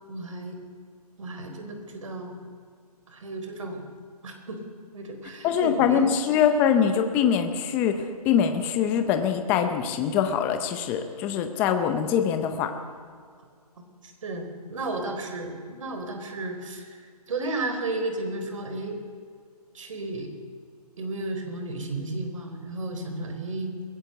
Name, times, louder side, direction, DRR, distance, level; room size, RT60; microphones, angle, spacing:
voice 1, 0.1-0.6 1.2-2.4 3.1-3.8 4.2-4.6 4.9-6.2 14.0-16.9 17.3-19.0 19.7-20.3 21.0-23.7, right 2 dB, 55° right, 6 dB, 4.3 m, -33 dB
voice 2, 5.4-12.7, left 8 dB, 10° left, 7 dB, 0.6 m, -23 dB
22.0 x 16.5 x 7.9 m, 2.1 s
hypercardioid pair, 165°, 20 cm